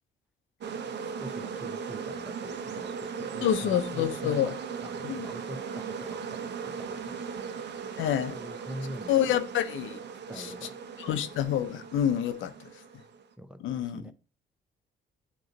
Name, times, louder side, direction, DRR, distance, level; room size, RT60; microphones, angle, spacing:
sound 1, 0.6-13.2, right 6 dB, 60° right, 0.7 m, -38 dB
voice 1, 1.2-4.5 4.8-7.2 8.3-9.2 10.3-10.7 13.4-14.1, equal, 5° right, 0.5 m, -44 dB
voice 2, 3.4-4.6 5.0-5.3 8.0-8.4 9.1-10.0 10.3-10.7 11.0-12.5 13.6-14.1, left 10 dB, 80° left, 0.7 m, -28 dB
7.9 x 3.1 x 3.9 m
cardioid pair, 90°, 20 cm